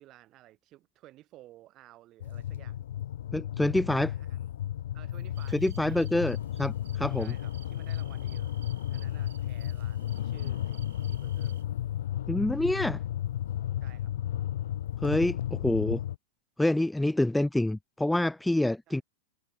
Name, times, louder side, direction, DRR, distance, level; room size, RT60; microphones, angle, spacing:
voice 1, 0.0-2.8 3.7-4.5 4.9-6.3 7.2-8.5 8.9-11.6 13.8-14.1 18.9-19.0, right 15 dB, 35° right, 3.4 m, -55 dB
sound 1, 2.2-16.2, left 12 dB, 75° left, 0.3 m, -33 dB
voice 2, 3.3-4.1 5.5-7.3 12.3-13.0 15.0-16.0 16.6-19.0, left 1 dB, 5° left, 0.5 m, -27 dB
sound 2, 5.3-11.6, right 11 dB, 75° right, 4.9 m, -57 dB
hypercardioid pair, 125°, 0 cm